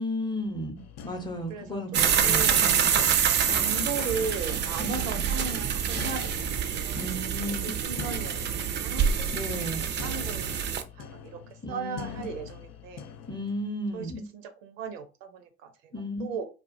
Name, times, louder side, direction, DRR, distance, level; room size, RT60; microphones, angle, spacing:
voice 1, 0.0-2.6 4.8-5.3 7.0-7.7 9.3-9.9 11.6-12.2 13.3-14.2 15.9-16.3, left 1 dB, 10° left, 3 dB, 0.7 m, -34 dB
sound 1, 0.8-13.7, left 7 dB, 45° left, 0.4 m, -43 dB
voice 2, 1.5-1.8 2.2-2.7 3.5-6.5 6.7-7.2 7.5-9.1 9.6-11.4 11.7-13.1 13.9-15.9 16.2-16.4, right 5 dB, 85° right, 7 dB, 0.5 m, -37 dB
sound 2, 1.9-10.8, right 8 dB, 30° right, 0.4 m, -26 dB
2.3 x 2.1 x 2.5 m, 0.31 s
hypercardioid pair, 60°, 38 cm